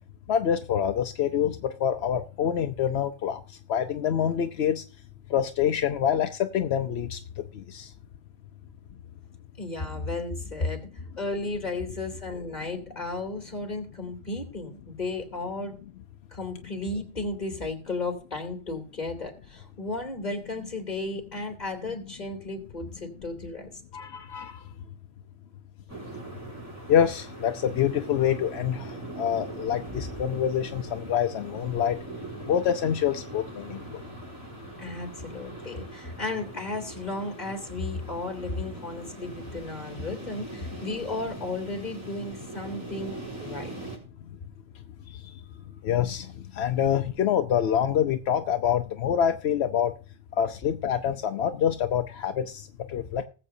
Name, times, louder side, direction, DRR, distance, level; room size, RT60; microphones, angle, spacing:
voice 1, 0.3-3.4 3.7-4.8 5.3-7.9 23.9-24.6 26.9-32.0 32.5-33.8 45.1-45.3 45.8-49.9 50.4-53.3, left 9 dB, 85° left, 7 dB, 0.9 m, -26 dB
voice 2, 9.6-10.9 11.2-15.8 16.3-23.7 34.8-43.7, left 2 dB, 45° left, 4 dB, 2.9 m, -34 dB
sound 1, 25.9-44.0, right 2 dB, 15° right, 6.5 m, -41 dB
20.0 x 7.7 x 2.7 m, 0.37 s
omnidirectional pair, 1.1 m